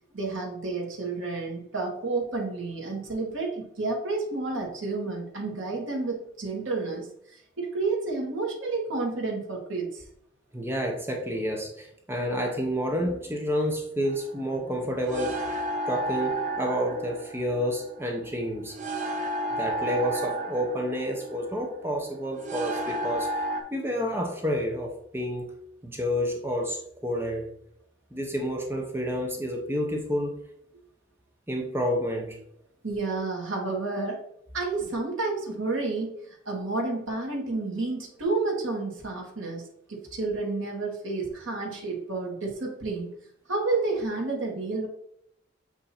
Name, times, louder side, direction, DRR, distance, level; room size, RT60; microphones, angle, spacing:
voice 1, 0.1-7.1 7.6-10.0 32.8-34.2 34.5-39.6 39.9-43.1 43.5-44.9, right 3 dB, 80° right, -1 dB, 1.6 m, -30 dB
voice 2, 10.5-18.7 19.6-23.4 23.7-25.5 25.8-27.4 28.1-30.4 31.5-32.4, equal, 10° right, 1 dB, 0.8 m, -29 dB
sound 1, 14.0-23.6, right 1 dB, 40° right, 0.9 m, -32 dB
7.9 x 2.8 x 4.2 m, 0.74 s
head